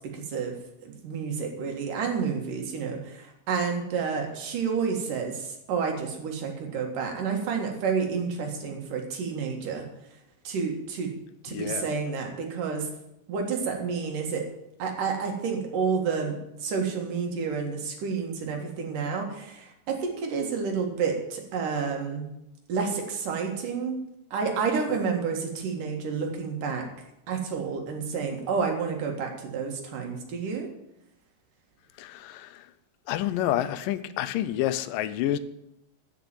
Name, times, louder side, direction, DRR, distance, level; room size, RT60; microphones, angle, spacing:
voice 1, 0.1-0.6 0.8-9.8 10.5-11.1 11.4-12.9 13.3-14.5 14.8-22.2 22.7-24.0 24.3-26.9 27.3-30.7, right 5 dB, 75° right, 3.5 m, -30 dB
voice 2, 11.5-11.9 31.9-32.7 33.1-35.4, left 12 dB, 85° left, 2.3 m, -29 dB
13.0 x 6.0 x 9.0 m
omnidirectional pair, 3.8 m